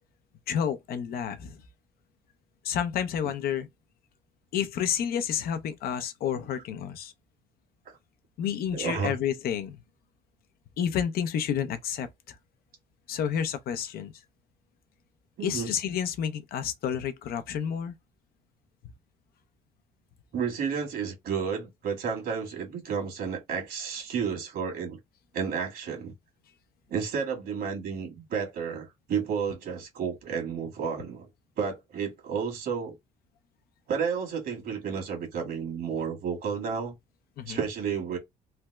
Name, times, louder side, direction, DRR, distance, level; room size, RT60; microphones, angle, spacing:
voice 1, 0.5-1.6 2.6-3.7 4.5-7.1 8.4-9.8 10.8-12.3 13.1-14.1 15.4-17.9 37.4-37.6, left 8 dB, 65° left, 0.5 m, -30 dB
voice 2, 8.7-9.1 15.4-15.7 20.3-25.0 25.3-26.1 26.9-31.3 31.6-32.9 33.9-36.9 37.5-38.2, right 6 dB, 65° right, 1.6 m, -31 dB
3.3 x 2.0 x 3.2 m
cardioid pair, 110°, 17 cm